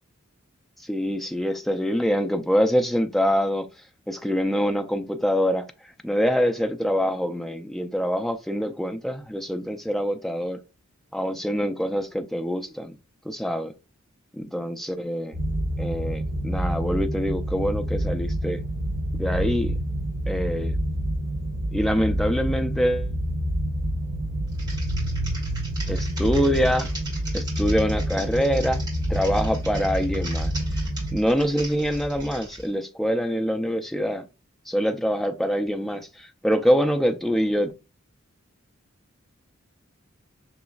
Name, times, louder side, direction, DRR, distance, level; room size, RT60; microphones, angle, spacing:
voice 1, 0.8-3.7 4.1-5.7 6.0-10.6 11.1-12.9 13.2-13.7 14.3-15.4 15.8-18.6 19.2-19.8 20.3-20.7 21.7-23.1 25.9-26.9 27.3-28.8 29.1-30.5 31.1-34.2 34.7-37.7, equal, ahead, 0.4 m, -25 dB
sound 1, 15.3-31.2, equal, 80° right, 0.9 m, -27 dB
Typing, 24.5-32.7, right 1 dB, 20° right, 2.2 m, -38 dB
5.9 x 3.0 x 2.3 m
head